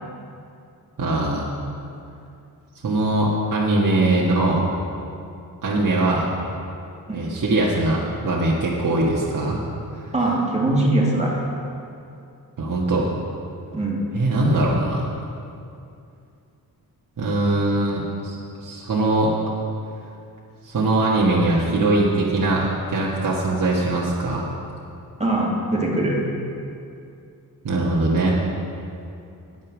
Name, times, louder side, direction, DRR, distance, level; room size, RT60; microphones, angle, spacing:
voice 1, 1.0-1.5 2.8-4.7 5.6-6.3 7.1-9.6 12.6-13.1 14.1-15.1 17.2-18.4 18.6-19.3 20.6-24.5 27.6-28.4, right 2 dB, 55° right, -5 dB, 1.5 m, -21 dB
voice 2, 10.1-11.4 13.7-14.0 25.2-26.2, right 2 dB, 15° right, -3 dB, 2.2 m, -21 dB
9.3 x 9.2 x 6.2 m, 2.5 s
cardioid pair, 90°, 38 cm